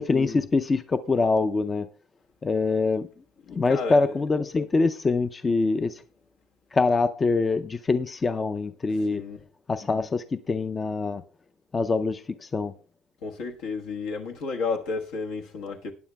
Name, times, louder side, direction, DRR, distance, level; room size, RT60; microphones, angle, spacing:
voice 1, 0.0-1.9 2.4-3.1 3.5-6.0 6.7-9.2 9.7-11.2 11.7-12.7, left 3 dB, 25° left, 0.4 m, -24 dB
voice 2, 3.4-4.3 9.0-9.4 13.2-15.9, left 4 dB, 80° left, 1.3 m, -32 dB
18.5 x 9.3 x 2.2 m
supercardioid pair, 100°, 0 cm